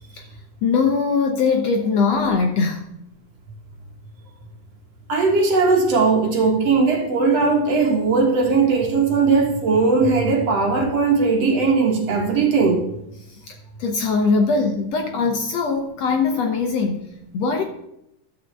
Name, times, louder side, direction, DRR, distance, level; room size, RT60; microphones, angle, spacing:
voice 1, 0.6-2.9 13.5-13.6 13.8-17.0 17.3-17.6, left 4 dB, 65° left, 3 dB, 1.9 m, -21 dB
voice 2, 5.1-12.8, right 4 dB, 55° right, 1 dB, 2.4 m, -18 dB
12.5 x 5.0 x 7.9 m, 0.81 s
omnidirectional pair, 3.8 m